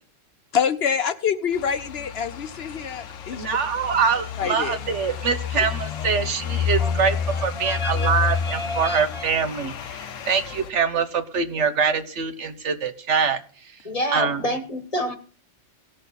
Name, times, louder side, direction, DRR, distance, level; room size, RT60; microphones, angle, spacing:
voice 1, 0.5-3.6 4.4-4.8, left 7 dB, 60° left, 0.8 m, -26 dB
sound 1, 1.5-10.7, left 7 dB, 85° left, 1.2 m, -30 dB
voice 2, 3.3-7.2 7.4-13.4 14.1-14.4, right 6 dB, 70° right, 1.3 m, -24 dB
voice 3, 7.3-9.3 13.8-15.2, left 1 dB, 30° left, 1.3 m, -29 dB
18.0 x 6.5 x 4.0 m
omnidirectional pair, 1.3 m